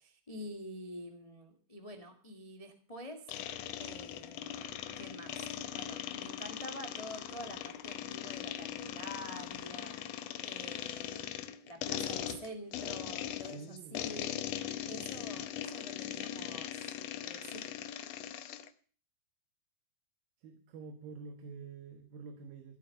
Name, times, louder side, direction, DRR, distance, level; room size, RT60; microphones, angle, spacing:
voice 1, 0.0-10.0 10.4-11.2 11.6-16.8 17.2-17.6, equal, 25° left, 4 dB, 0.8 m, -47 dB
sound 1, 3.3-18.7, left 11 dB, 80° left, 1.5 m, -40 dB
voice 2, 13.4-14.1 20.4-22.8, right 5 dB, 75° right, 6 dB, 3.1 m, -48 dB
16.5 x 8.3 x 6.5 m, 0.43 s
omnidirectional pair, 4.2 m